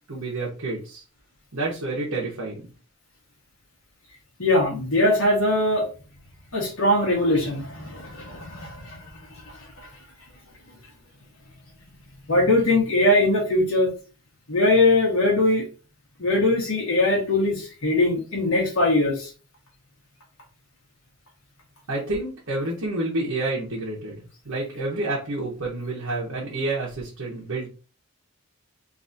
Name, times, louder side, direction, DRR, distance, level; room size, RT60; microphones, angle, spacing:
voice 1, 0.1-1.0 1.5-2.7 21.9-27.7, right 2 dB, 85° right, -4 dB, 1.1 m, -29 dB
voice 2, 4.4-5.9 6.5-9.0 12.3-13.9 14.5-15.6 16.2-19.3, left 2 dB, 70° left, -2 dB, 1.5 m, -21 dB
3.9 x 2.7 x 2.7 m, 0.35 s
head